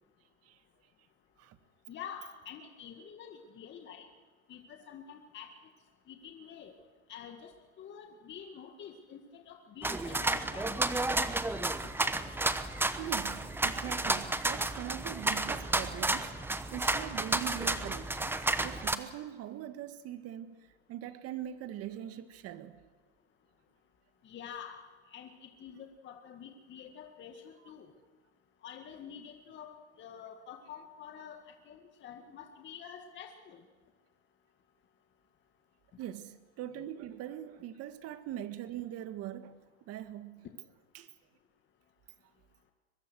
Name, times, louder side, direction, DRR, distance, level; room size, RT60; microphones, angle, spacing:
voice 1, 1.9-4.1 4.5-5.5 6.1-6.8 7.1-10.8 24.2-24.8 25.1-27.9 28.6-29.7 30.0-33.6, left 8 dB, 35° left, 2.0 m, -48 dB
sound 1, 9.8-19.0, right 2 dB, 5° right, 1.0 m, -32 dB
voice 2, 13.0-16.5 16.7-20.6 20.9-22.8 36.0-39.5 39.9-40.5 40.9-41.1, right 11 dB, 45° right, 1.8 m, -42 dB
23.5 x 21.0 x 6.3 m
supercardioid pair, 120°, 34 cm